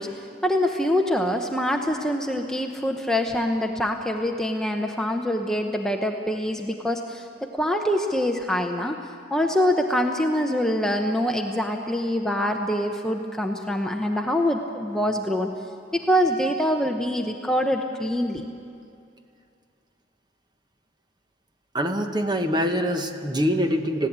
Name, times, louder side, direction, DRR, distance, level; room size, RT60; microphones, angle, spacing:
voice 1, 0.0-9.0 9.3-15.5 15.9-18.4, equal, 5° left, 3 dB, 0.8 m, -25 dB
voice 2, 21.7-24.1, equal, 25° right, 5 dB, 1.1 m, -24 dB
19.5 x 16.5 x 8.8 m, 2.5 s
head